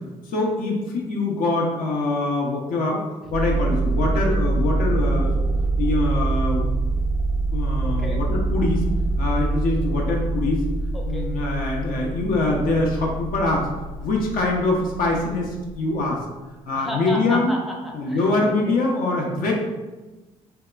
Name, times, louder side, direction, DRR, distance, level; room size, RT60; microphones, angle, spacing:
voice 1, 0.3-3.0 3.3-5.4 5.8-6.6 7.5-8.9 9.2-10.6 11.0-13.7 14.0-16.2 16.7-17.5 17.9-19.5, left 2 dB, 65° left, -1 dB, 0.6 m, -23 dB
sound 1, 3.3-16.0, right 2 dB, 55° right, 0.5 m, -25 dB
voice 2, 7.8-8.2 10.9-11.3 16.7-18.7, equal, ahead, -1 dB, 0.5 m, -33 dB
2.7 x 2.2 x 2.3 m, 1.2 s
hypercardioid pair, 55°, 16 cm